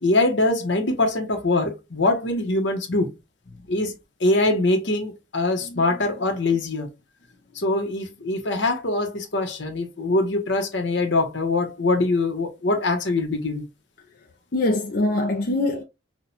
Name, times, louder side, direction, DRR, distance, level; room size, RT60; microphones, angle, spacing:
voice 1, 0.0-3.1 3.7-3.9 4.2-6.9 7.6-13.7, left 2 dB, 70° left, 1.1 m, -23 dB
voice 2, 14.5-15.8, left 2 dB, 50° left, 0.5 m, -23 dB
5.9 x 2.4 x 2.8 m
head